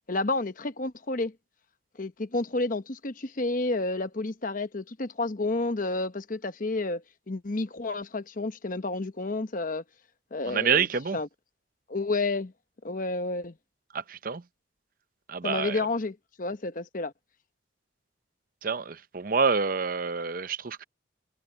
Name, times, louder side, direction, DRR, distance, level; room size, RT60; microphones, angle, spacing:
voice 1, 0.1-1.3 2.0-9.8 10.3-10.9 11.1-11.3 11.9-12.5 12.8-13.5 15.4-17.1, left 2 dB, 45° left, 0.9 m, -30 dB
voice 2, 10.4-11.2 13.9-14.4 15.3-15.9 18.6-20.8, right 5 dB, 50° right, 0.7 m, -27 dB
head